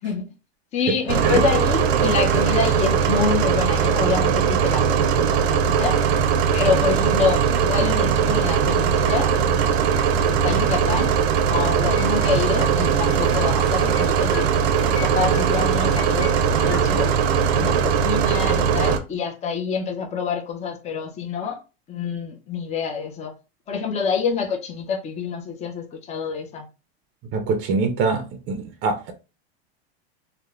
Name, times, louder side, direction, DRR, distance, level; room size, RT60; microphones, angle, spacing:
voice 1, 0.0-0.3 0.7-6.0 6.5-9.3 9.7-9.8 10.1-11.2 11.4-14.5 14.9-17.1 17.5-21.6 21.9-23.3 23.7-26.7, left 6 dB, 20° left, 0.5 m, -27 dB
sound 1, 1.1-19.0, right 7 dB, 85° right, 0.5 m, -20 dB
sound 2, 9.1-10.0 10.3-11.1 11.3-12.8 13.1-14.1 14.3-15.1 15.3-16.9, left 5 dB, 85° left, 0.8 m, -39 dB
sound 3, 12.0-17.6, right 1 dB, ahead, 1.2 m, -42 dB
voice 2, 27.3-29.1, right 4 dB, 35° right, 0.5 m, -24 dB
2.9 x 2.1 x 2.4 m
supercardioid pair, 130°, 31 cm